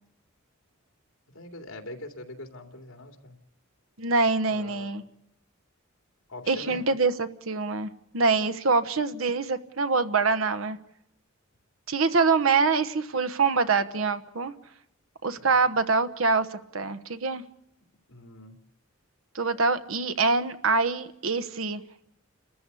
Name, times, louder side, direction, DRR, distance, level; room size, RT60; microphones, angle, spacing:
voice 1, 1.3-3.4 4.5-4.9 6.3-6.8 15.3-15.6 18.1-18.6, left 2 dB, 80° left, 4 dB, 2.9 m, -43 dB
voice 2, 4.0-5.0 6.5-10.8 11.9-14.5 15.2-17.4 19.3-21.8, right 4 dB, 75° right, 10 dB, 1.2 m, -25 dB
29.0 x 14.0 x 8.4 m, 0.81 s
head